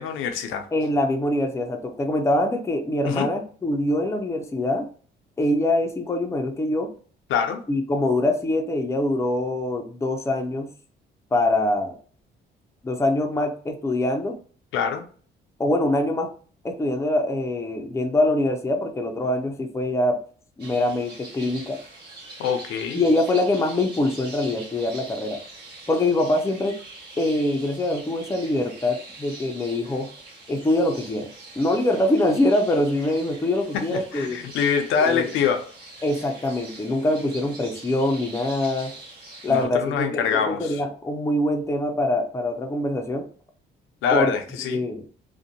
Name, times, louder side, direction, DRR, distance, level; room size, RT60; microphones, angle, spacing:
voice 1, 0.0-0.7 3.0-3.3 7.3-7.6 14.7-15.0 22.4-23.0 33.9-35.6 39.5-40.8 44.0-44.8, left 7 dB, 85° left, 6 dB, 0.5 m, -24 dB
voice 2, 0.7-4.9 5.4-6.9 7.7-10.7 11.3-12.0 12.8-14.4 15.6-16.3 16.6-20.2 20.6-21.8 22.9-25.4 25.9-26.8 27.2-30.1 30.5-31.3 31.6-34.4 35.0-35.3 36.0-38.9 39.4-43.3 44.1-44.3 44.7-45.1, left 1 dB, 15° left, 4 dB, 0.5 m, -24 dB
sound 1, 20.6-39.7, right 2 dB, 55° right, 1.1 m, -43 dB
2.6 x 2.1 x 2.6 m, 0.43 s
cardioid pair, 90°, 20 cm